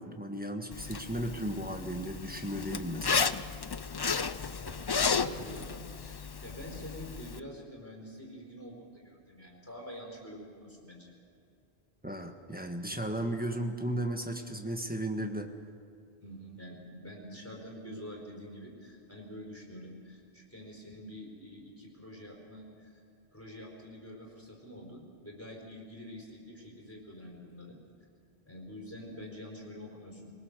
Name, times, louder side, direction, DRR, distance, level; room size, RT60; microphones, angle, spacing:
voice 1, 0.0-3.3 12.0-15.5, right 1 dB, 10° right, 4 dB, 1.4 m, -35 dB
Zipper (clothing), 0.7-7.4, left 5 dB, 45° left, 0.3 m, -33 dB
voice 2, 4.4-11.1 16.2-23.0 23.3-27.8 28.5-30.3, equal, 10° left, -1 dB, 4.4 m, -46 dB
22.5 x 20.0 x 6.7 m, 2.4 s
omnidirectional pair, 1.1 m